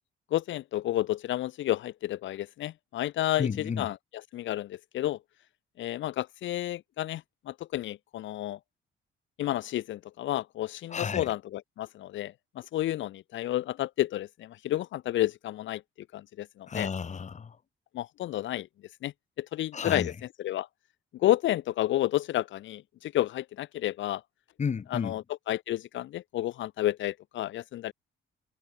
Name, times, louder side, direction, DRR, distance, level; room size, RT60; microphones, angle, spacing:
voice 1, 0.3-4.0 4.3-5.2 5.8-8.6 9.4-15.8 16.1-16.9 17.9-18.7 19.0-20.1 20.4-20.7 21.1-24.2 24.9-27.9, left 14 dB, 75° left, 0.8 m, -31 dB
voice 2, 3.4-3.9 10.9-11.3 16.7-17.6 19.7-20.1 24.6-25.1, left 6 dB, 35° left, 1.4 m, -32 dB
cardioid pair, 90°, 20 cm